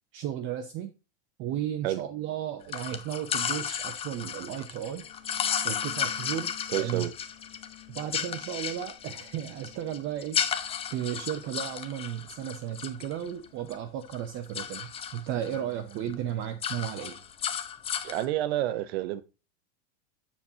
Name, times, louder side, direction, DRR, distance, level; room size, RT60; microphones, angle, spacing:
voice 1, 0.1-0.9 1.4-5.1 5.6-7.0 7.9-10.6 10.9-17.2, right 10 dB, 35° right, 0.7 m, -34 dB
sound 1, 2.7-13.8 14.0-15.6 15.9-16.1 16.4-18.2, left 8 dB, 15° left, 0.6 m, -34 dB
sound 2, 5.0-15.9, left 18 dB, 75° left, 2.3 m, -55 dB
voice 2, 6.7-7.1 18.0-19.2, right 14 dB, 65° right, 0.9 m, -29 dB
7.1 x 7.0 x 2.8 m
supercardioid pair, 140°, 34 cm